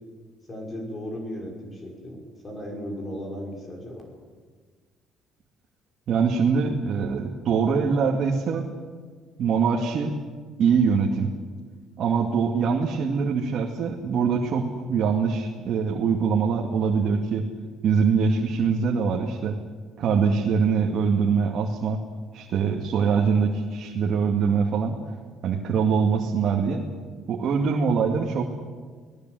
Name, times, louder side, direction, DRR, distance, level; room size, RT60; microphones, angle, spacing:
voice 1, 0.5-4.1, equal, 25° left, 0 dB, 5.4 m, -36 dB
voice 2, 6.1-8.7 9.4-10.1 10.6-11.3 12.0-17.4 17.8-19.6 20.0-22.0 22.3-25.0 25.4-26.8 27.3-28.4, right 5 dB, 50° right, 0 dB, 2.3 m, -23 dB
27.5 x 18.5 x 7.9 m, 1.5 s
cardioid pair, 140°, 0 cm